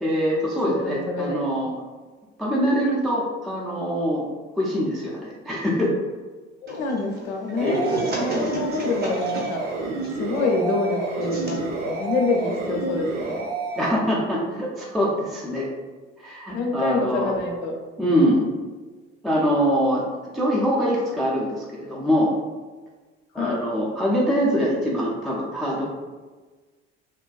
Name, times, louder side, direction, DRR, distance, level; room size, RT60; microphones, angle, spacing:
voice 1, 0.0-1.7 2.4-4.2 4.6-5.9 7.6-7.8 13.8-15.7 16.2-17.3 18.0-18.5 19.2-20.0 20.3-22.3 23.3-25.8, equal, ahead, -5 dB, 0.4 m, -23 dB
voice 2, 0.7-1.4 6.6-9.6 10.1-13.5 16.5-17.8 23.3-23.6, left 3 dB, 65° left, 1 dB, 0.6 m, -26 dB
sound 1, 6.7-13.3, right 2 dB, 25° right, 0.7 m, -34 dB
sound 2, 7.6-13.9, right 3 dB, 80° right, 0.5 m, -30 dB
2.5 x 2.2 x 2.3 m, 1.3 s
figure-of-eight pair, 55°, 37 cm